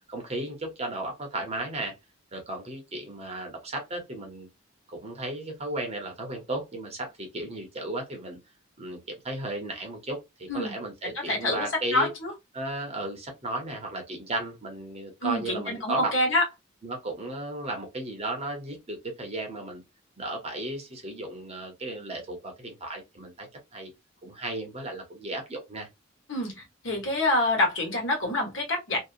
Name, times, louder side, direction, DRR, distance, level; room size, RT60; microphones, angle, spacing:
voice 1, 0.1-1.9 2.3-4.5 4.9-8.4 8.8-12.1 12.5-16.1 16.8-19.8 20.2-23.9 24.2-25.9, right 2 dB, 30° right, 0.7 m, -35 dB
voice 2, 11.0-12.3 15.2-16.4 26.3-29.0, left 1 dB, 65° left, 1.3 m, -27 dB
2.7 x 2.2 x 2.4 m
head